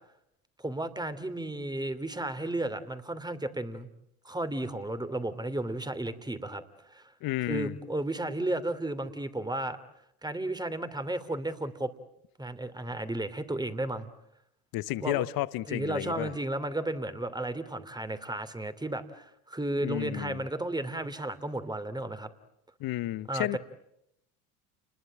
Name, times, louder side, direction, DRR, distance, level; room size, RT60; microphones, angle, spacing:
voice 1, 0.6-3.9 4.2-7.1 7.5-9.8 10.2-11.9 12.4-14.1 15.0-15.2 15.7-22.3 23.3-23.6, right 1 dB, 10° right, 2.8 m, -33 dB
voice 2, 7.2-7.7 14.7-16.3 19.8-20.5 22.8-23.6, left 16 dB, 55° left, 1.1 m, -32 dB
29.5 x 21.0 x 8.9 m
hypercardioid pair, 70°, 43 cm